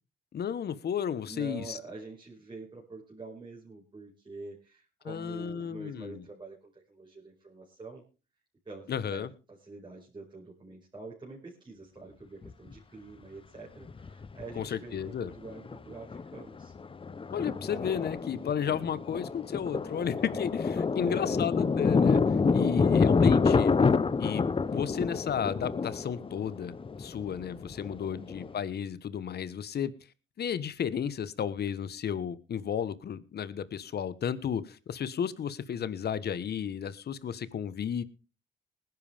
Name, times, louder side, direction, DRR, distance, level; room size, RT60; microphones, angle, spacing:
voice 1, 0.3-1.8 5.0-6.2 8.9-9.3 14.5-15.3 17.3-22.2 22.5-23.7 24.2-24.4 24.7-26.7 27.0-29.9 30.4-38.0, left 8 dB, 55° left, 16 dB, 1.3 m, -33 dB
voice 2, 1.2-8.0 8.6-16.7 18.6-19.0 21.0-21.4 22.4-23.0 28.1-28.5, right 3 dB, 25° right, -3 dB, 5.2 m, -46 dB
Thunder, 12.4-12.5 13.9-14.7 14.9-15.0 15.5-15.7 16.1-28.5, left 5 dB, 25° left, 0.8 m, -27 dB
19.5 x 11.0 x 3.5 m, 0.32 s
cardioid pair, 90°, 20 cm